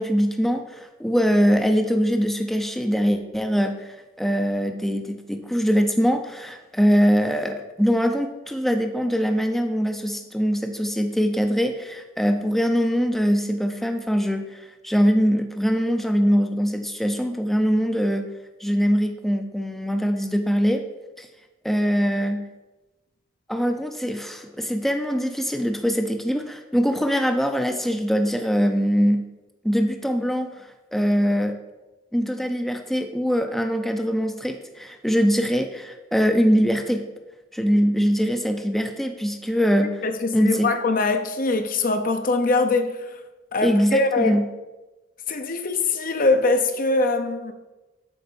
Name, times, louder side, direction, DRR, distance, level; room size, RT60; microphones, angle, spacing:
voice 1, 0.0-18.3 18.6-20.8 21.2-21.3 21.6-22.4 23.5-29.3 29.6-31.6 32.1-37.0 37.5-40.0 40.3-40.7 43.6-44.4, equal, ahead, 0.5 m, -22 dB
voice 2, 40.0-43.0 43.5-44.4 45.3-47.5, left 3 dB, 50° left, 0.7 m, -22 dB
8.1 x 4.3 x 6.9 m
head